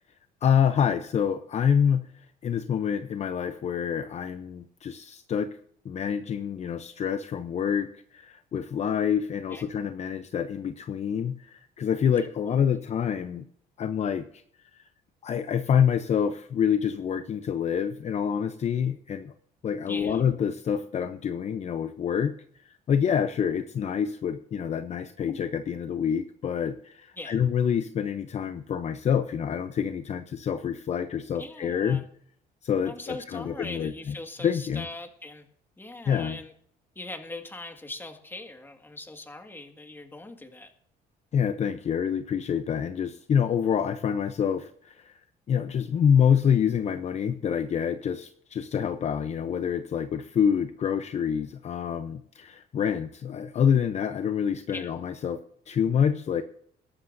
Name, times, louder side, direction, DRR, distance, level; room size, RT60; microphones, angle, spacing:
voice 1, 0.4-2.1 2.4-5.6 5.8-13.4 13.8-14.4 14.7-14.8 15.2-19.3 19.6-22.3 22.9-32.0 32.6-34.1 34.4-34.9 36.1-36.4 41.3-45.1 45.5-55.4 55.7-56.4, left 8 dB, 40° left, 10 dB, 0.7 m, -27 dB
voice 2, 19.9-20.2 27.2-27.4 31.3-32.0 32.9-35.4 35.8-36.5 37.0-40.7 54.7-54.9, left 2 dB, 10° left, 5 dB, 1.8 m, -41 dB
22.5 x 11.5 x 2.7 m, 0.66 s
cardioid pair, 110°, 17 cm